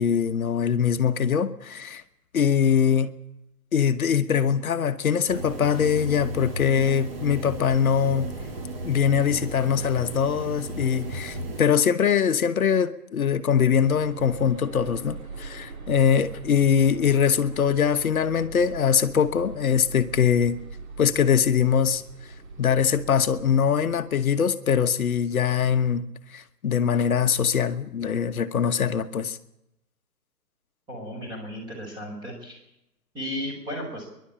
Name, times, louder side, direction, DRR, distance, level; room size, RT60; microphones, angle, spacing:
voice 1, 0.0-2.0 2.3-3.1 3.7-8.3 8.8-20.6 21.0-22.0 22.6-26.1 26.3-29.4, left 7 dB, 60° left, 1.3 m, -22 dB
sound 1, 5.3-11.6, right 1 dB, 35° right, 3.1 m, -34 dB
Hanover Station, 13.7-23.9, right 3 dB, 60° right, 3.4 m, -40 dB
voice 2, 30.9-32.6 33.1-34.1, equal, 10° right, 4.9 m, -34 dB
27.0 x 11.5 x 8.8 m
hypercardioid pair, 165°, 48 cm